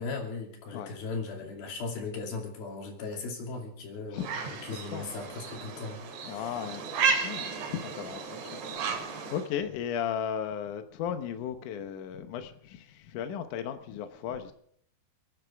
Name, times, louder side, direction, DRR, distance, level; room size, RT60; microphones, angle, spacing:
voice 1, 0.0-6.4, left 4 dB, 60° left, 4.3 m, -38 dB
voice 2, 4.1-4.5 4.8-5.1 6.2-14.5, left 9 dB, 85° left, 1.8 m, -36 dB
sound 1, 4.2-9.5, right 5 dB, 85° right, 5.0 m, -33 dB
30.0 x 10.0 x 3.5 m
omnidirectional pair, 5.2 m